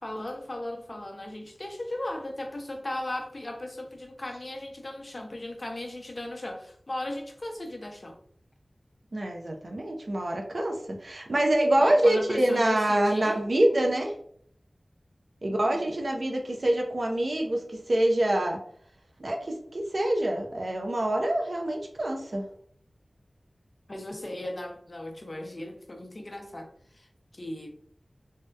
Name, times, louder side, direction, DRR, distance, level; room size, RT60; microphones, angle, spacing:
voice 1, 0.0-8.2 11.8-13.4 15.4-15.8 23.9-26.7 26.9-27.1 27.3-27.8, left 1 dB, 45° left, 0.6 m, -37 dB
voice 2, 9.1-14.1 15.4-18.6 19.2-22.4, right 1 dB, 65° right, 0.6 m, -26 dB
3.2 x 2.7 x 2.3 m
wide cardioid pair, 70°, 0 cm